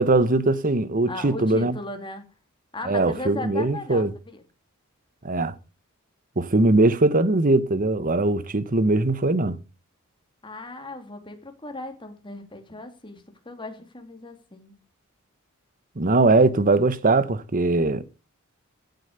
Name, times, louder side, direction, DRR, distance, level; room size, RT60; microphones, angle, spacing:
voice 1, 0.0-1.7 2.9-4.1 5.2-5.5 6.4-9.6 16.0-18.0, right 2 dB, 40° right, 1.0 m, -21 dB
voice 2, 1.1-2.2 2.7-4.1 4.3-4.4 10.4-14.7, left 2 dB, 25° left, 3.1 m, -37 dB
15.5 x 7.9 x 6.8 m
head